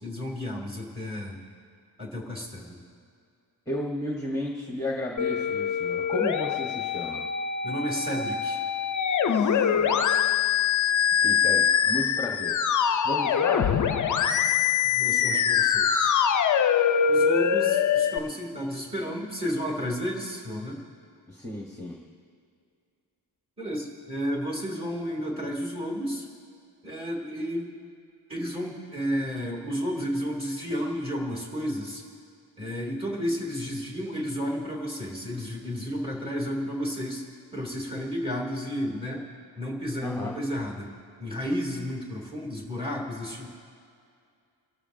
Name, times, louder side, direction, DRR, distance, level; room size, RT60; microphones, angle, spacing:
voice 1, 0.0-1.4 2.0-2.8 7.6-8.6 14.9-16.2 17.1-20.8 23.6-26.3 26.8-27.7 28.3-32.0 32.6-37.2 37.5-39.2 39.6-40.9 41.2-43.5, equal, 15° right, -2 dB, 2.4 m, -32 dB
voice 2, 3.7-7.2 9.3-10.0 11.2-12.6 13.0-13.8 21.3-22.0 40.0-40.4, left 1 dB, 5° left, -1 dB, 1.0 m, -33 dB
Musical instrument, 5.2-18.2, left 8 dB, 45° left, 0.4 m, -24 dB
26.0 x 13.0 x 2.6 m, 2.3 s
wide cardioid pair, 165°, 43 cm